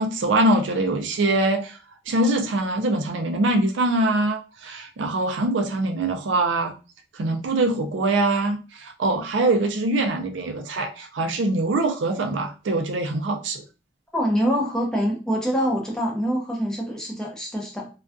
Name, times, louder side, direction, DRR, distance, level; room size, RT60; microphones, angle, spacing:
voice 1, 0.0-1.8 2.1-6.7 7.1-13.6, right 2 dB, 75° right, 4 dB, 0.4 m, -23 dB
voice 2, 14.1-17.9, equal, 5° left, -2 dB, 0.6 m, -25 dB
2.3 x 2.3 x 2.4 m, 0.32 s
head